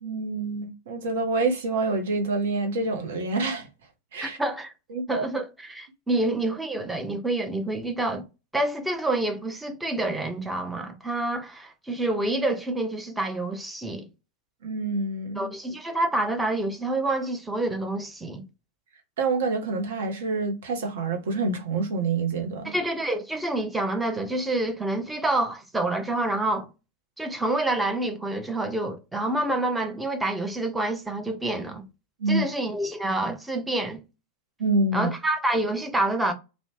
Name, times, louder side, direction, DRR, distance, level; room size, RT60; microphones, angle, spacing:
voice 1, 0.0-3.7 4.1-4.4 4.9-5.3 14.6-15.5 19.2-22.8 32.2-32.4 34.6-35.1, right 3 dB, 60° right, 0.7 m, -27 dB
voice 2, 4.2-4.7 5.1-8.2 8.5-14.1 15.4-18.4 22.6-26.7 27.2-31.8 32.3-34.0 34.9-36.3, right 2 dB, 5° right, 0.5 m, -27 dB
2.5 x 2.0 x 3.2 m
figure-of-eight pair, 90°, 0 cm